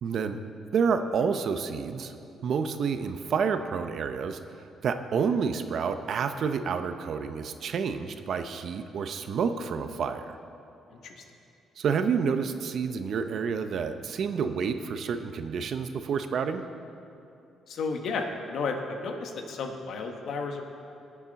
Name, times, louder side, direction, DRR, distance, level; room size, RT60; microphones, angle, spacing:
voice 1, 0.0-0.4 0.7-2.1 2.4-10.4 11.8-16.6, right 6 dB, 60° right, 9 dB, 0.7 m, -29 dB
voice 2, 17.7-20.6, left 4 dB, 70° left, 4 dB, 1.2 m, -33 dB
18.5 x 7.2 x 4.1 m, 2.7 s
cardioid pair, 90°, 0 cm